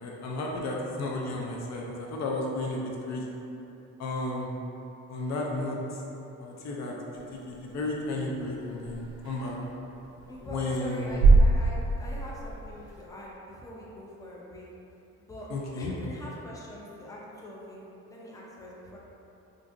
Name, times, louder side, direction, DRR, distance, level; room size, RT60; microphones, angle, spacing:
voice 1, 0.0-2.8 3.1-3.3 4.0-4.5 5.1-5.8 6.4-6.9 7.5-9.6 10.5-11.1 15.5-15.9, left 2 dB, 65° left, -2 dB, 0.5 m, -33 dB
sound 1, 7.1-13.1, right 3 dB, 65° right, 0.5 m, -26 dB
voice 2, 10.3-14.7 15.2-15.5 15.8-19.0, equal, 10° left, -5 dB, 0.5 m, -43 dB
3.7 x 2.5 x 2.5 m, 2.9 s
cardioid pair, 90°, 30 cm